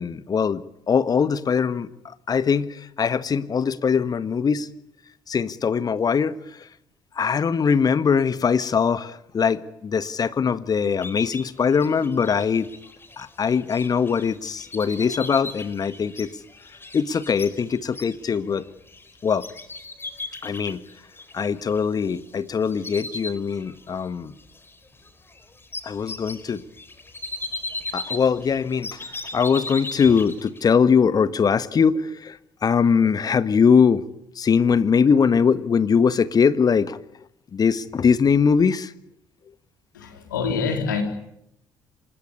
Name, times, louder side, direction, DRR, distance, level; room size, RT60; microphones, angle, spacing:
voice 1, 0.0-4.7 5.3-6.7 7.1-12.7 13.2-16.3 16.9-18.6 19.2-19.5 20.4-20.8 21.3-24.3 25.8-26.6 27.9-29.0 29.3-34.0 34.3-37.0 37.5-38.9, left 6 dB, 40° left, 14 dB, 1.6 m, -21 dB
sound 1, 11.0-22.3 22.6-24.1 24.4-30.7, left 2 dB, 20° left, 4.5 m, -38 dB
voice 2, 39.9-41.0, left 5 dB, 80° left, 4 dB, 4.0 m, -26 dB
26.5 x 20.5 x 9.8 m, 0.79 s
figure-of-eight pair, 50°, 10 cm